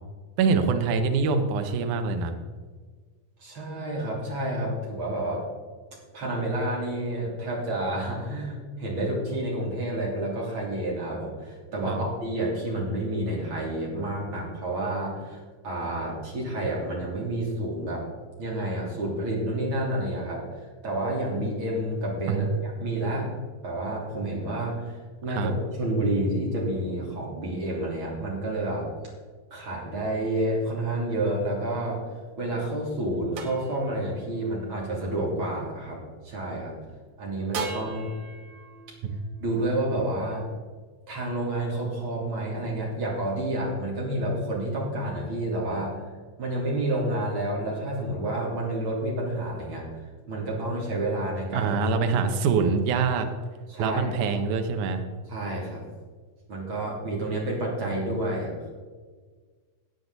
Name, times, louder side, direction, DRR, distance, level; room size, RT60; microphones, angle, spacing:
voice 1, 0.4-2.4 11.9-12.1 22.3-22.5 25.3-25.5 39.0-39.2 51.5-53.3 53.8-55.0, right 5 dB, 75° right, 6 dB, 2.4 m, -24 dB
voice 2, 3.4-5.4 6.1-18.0 18.4-20.4 20.8-23.3 23.6-28.9 29.5-32.0 32.4-36.0 36.2-36.7 37.2-38.1 39.4-40.4 41.1-46.1 46.4-49.9 50.3-51.7 53.7-54.2 55.3-55.8 56.5-58.5, right 1 dB, 40° right, -3 dB, 3.9 m, -29 dB
sound 1, 31.2-36.5 37.5-40.9, right 4 dB, 55° right, 2.0 m, -41 dB
16.0 x 9.1 x 4.0 m, 1.5 s
omnidirectional pair, 3.6 m